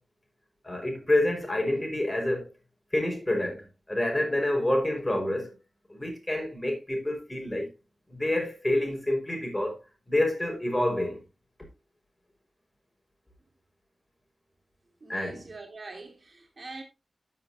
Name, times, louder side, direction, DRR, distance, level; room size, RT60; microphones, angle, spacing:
voice 1, 0.6-2.5 2.9-5.6 5.9-7.7 8.1-9.8 10.1-11.2 15.1-15.5, left 1 dB, 25° left, 5.0 m, -28 dB
voice 2, 15.0-16.8, right 3 dB, 55° right, 2.8 m, -44 dB
13.0 x 7.1 x 2.7 m
cardioid pair, 45°, 0 cm